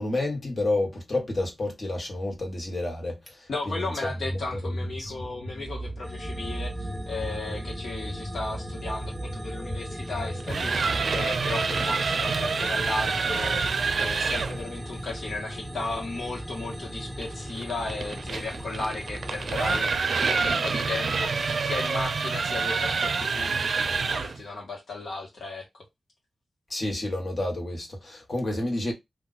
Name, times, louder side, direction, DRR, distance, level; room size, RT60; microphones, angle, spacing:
voice 1, 0.0-4.1 4.6-5.1 26.7-28.9, left 2 dB, 45° left, 1.4 m, -30 dB
voice 2, 3.5-19.9 20.3-25.7, left 3 dB, 75° left, 1.2 m, -35 dB
sound 1, 4.2-11.0, equal, 10° left, 1.1 m, -39 dB
sound 2, 6.0-19.8, equal, 5° right, 0.4 m, -38 dB
sound 3, 10.3-14.6 17.2-24.4, right 4 dB, 70° right, 0.4 m, -27 dB
2.5 x 2.4 x 3.9 m
wide cardioid pair, 120°, 0 cm